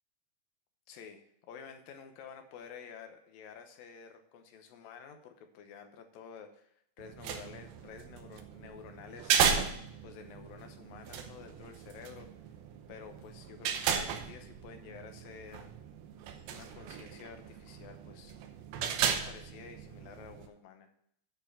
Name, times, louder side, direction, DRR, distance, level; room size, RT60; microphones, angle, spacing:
voice 1, 0.9-9.4 10.0-12.3 12.9-15.7 16.5-18.3 18.8-20.9, left 6 dB, 75° left, 6 dB, 2.7 m, -50 dB
sound 1, 7.0-20.5, right 7 dB, 85° right, 2.8 m, -36 dB
10.0 x 4.5 x 7.3 m, 0.70 s
omnidirectional pair, 4.2 m